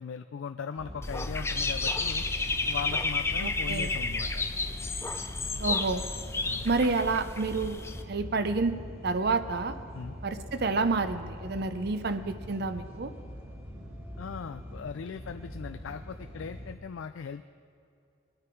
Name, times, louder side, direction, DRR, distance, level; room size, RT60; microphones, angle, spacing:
voice 1, 0.0-2.3 2.7-4.3 6.4-6.9 9.9-10.2 14.2-17.5, left 6 dB, 80° left, 9 dB, 0.4 m, -39 dB
sound 1, 0.8-16.8, equal, 10° right, 1.5 m, -43 dB
Dog / Bird, 1.0-8.0, left 3 dB, 15° left, 0.5 m, -31 dB
voice 2, 3.4-3.9 5.6-6.0 6.6-8.8 9.0-9.8 10.2-13.1, right 3 dB, 55° right, 10 dB, 0.6 m, -29 dB
22.0 x 9.7 x 4.6 m, 2.5 s
head